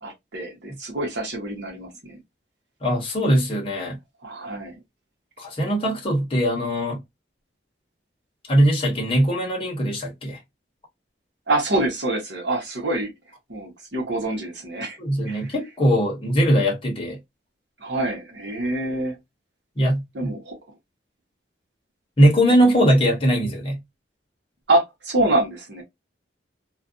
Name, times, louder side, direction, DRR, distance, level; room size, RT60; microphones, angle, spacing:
voice 1, 0.0-2.2 4.2-4.8 11.5-13.1 13.5-15.0 15.3-15.4 17.8-19.2 20.1-20.5 24.7-25.8, right 2 dB, 75° right, 1.0 m, -26 dB
voice 2, 2.8-4.0 5.4-7.0 8.4-10.4 15.0-17.2 19.8-20.3 22.2-23.8, equal, 30° left, 0.8 m, -20 dB
2.4 x 2.2 x 2.4 m
head